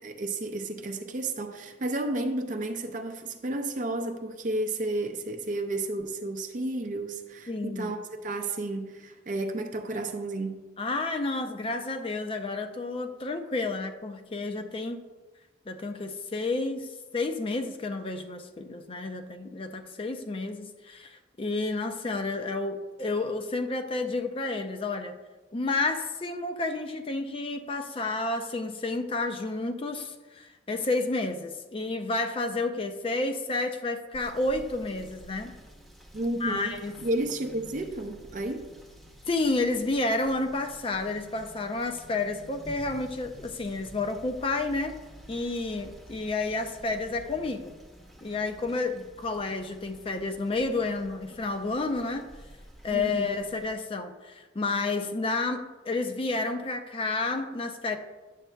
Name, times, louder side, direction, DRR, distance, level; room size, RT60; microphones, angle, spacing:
voice 1, 0.0-10.6 36.1-36.7 37.0-38.7 52.9-53.3, right 2 dB, 45° right, 5 dB, 0.5 m, -32 dB
voice 2, 7.5-7.9 10.8-15.0 15.7-25.2 25.5-35.5 36.4-36.9 39.3-45.0 45.3-47.7 48.2-52.2 52.8-58.0, left 3 dB, 30° left, 7 dB, 0.5 m, -30 dB
Rain / Motor vehicle (road), 34.1-53.7, equal, ahead, 0.7 m, -50 dB
9.8 x 7.2 x 2.3 m, 1.2 s
head